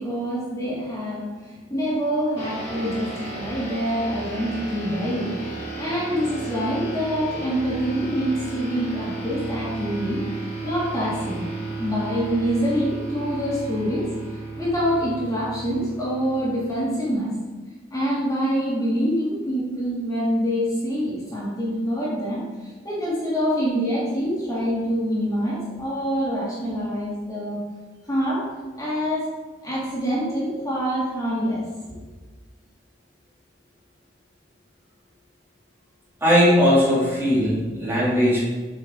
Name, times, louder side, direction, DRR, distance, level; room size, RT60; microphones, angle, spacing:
voice 1, 0.0-5.4 5.8-10.2 10.6-11.5 11.8-17.3 17.9-22.4 22.8-27.6 28.1-28.5 28.8-29.3 29.6-31.6, equal, 20° left, -8 dB, 2.5 m, -25 dB
sound 1, 2.4-17.2, right 3 dB, 40° left, 2.0 m, -34 dB
voice 2, 36.2-38.4, equal, 15° right, -9 dB, 2.5 m, -18 dB
8.3 x 5.4 x 3.8 m, 1.3 s
head